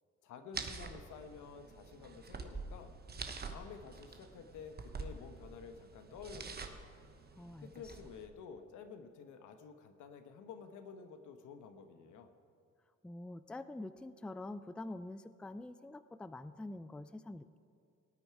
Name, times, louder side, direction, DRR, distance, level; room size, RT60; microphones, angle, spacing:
voice 1, 0.2-2.9 3.5-6.8 7.6-12.3, left 6 dB, 80° left, 8 dB, 1.1 m, -51 dB
sound 1, 0.5-8.3, right 4 dB, 30° right, 1.1 m, -47 dB
voice 2, 7.4-7.7 13.0-17.6, left 2 dB, 5° left, 13 dB, 0.4 m, -46 dB
18.0 x 9.1 x 4.7 m, 2.4 s
cardioid pair, 90°, 30 cm